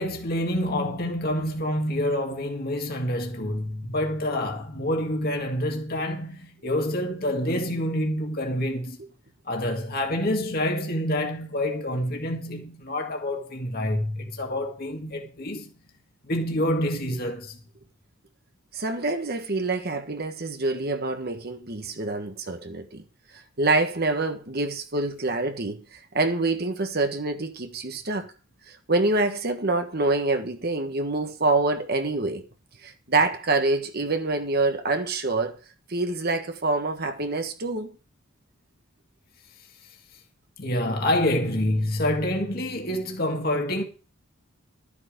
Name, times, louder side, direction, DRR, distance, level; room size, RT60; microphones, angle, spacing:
voice 1, 0.0-9.0 9.5-15.7 16.2-17.6 40.6-43.8, left 1 dB, 45° left, 2.1 m, -27 dB
voice 2, 18.7-23.0 23.6-28.3 28.7-32.4 32.8-35.6 35.9-37.9, right 2 dB, 45° right, 1.4 m, -26 dB
13.0 x 8.6 x 5.1 m
head